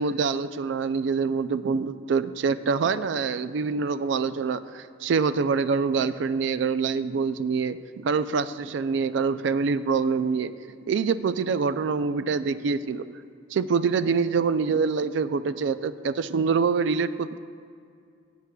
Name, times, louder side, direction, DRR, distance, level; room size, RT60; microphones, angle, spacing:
voice 1, 0.0-10.5 10.9-13.1 13.5-17.4, right 5 dB, 65° right, 13 dB, 0.3 m, -25 dB
16.0 x 8.2 x 2.3 m, 2.4 s
head